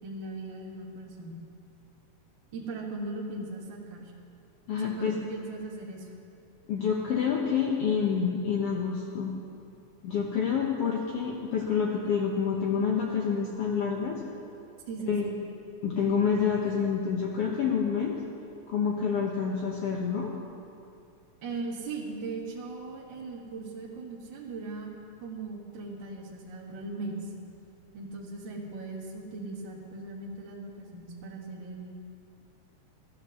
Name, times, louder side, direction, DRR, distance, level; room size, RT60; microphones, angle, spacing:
voice 1, 0.0-1.4 2.5-4.1 4.7-6.1 14.9-15.4 21.4-24.9 25.2-27.3 27.9-31.9, right 3 dB, 50° right, -2 dB, 1.7 m, -38 dB
voice 2, 4.7-5.1 6.7-9.3 10.0-14.2 15.1-15.3 15.8-18.1 18.7-20.3, left 6 dB, 65° left, -1 dB, 1.7 m, -28 dB
13.5 x 9.6 x 6.8 m, 2.5 s
omnidirectional pair, 3.4 m